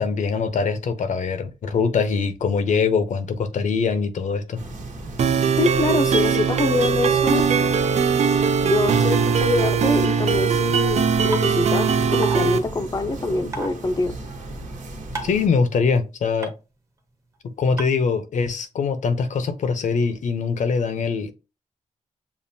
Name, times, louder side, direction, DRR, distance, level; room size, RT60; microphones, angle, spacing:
voice 1, 0.0-4.6 15.2-16.5 17.6-21.3, left 5 dB, 70° left, 0.7 m, -23 dB
sound 1, 4.5-15.5, right 2 dB, 80° right, 1.3 m, -36 dB
sound 2, 5.2-12.6, right 6 dB, 60° right, 0.5 m, -20 dB
voice 2, 5.6-7.7 8.6-14.1, left 3 dB, 25° left, 0.5 m, -24 dB
sound 3, 11.3-11.4 12.2-12.4 13.5-13.7 15.2-15.4 16.4-16.5 17.8-17.9, right 3 dB, 25° right, 1.0 m, -29 dB
7.0 x 2.4 x 2.7 m
wide cardioid pair, 135°, 13 cm